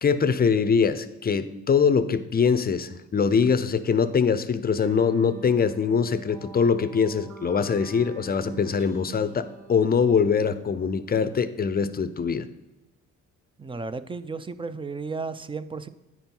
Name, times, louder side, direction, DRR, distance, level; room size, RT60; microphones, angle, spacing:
voice 1, 0.0-12.5, left 6 dB, 30° left, 13 dB, 0.5 m, -23 dB
sound 1, 4.8-11.7, right 4 dB, 80° right, 1.1 m, -47 dB
voice 2, 13.6-15.9, right 4 dB, 15° right, 13 dB, 0.4 m, -34 dB
9.2 x 5.4 x 4.5 m, 0.99 s
cardioid pair, 90°, 30 cm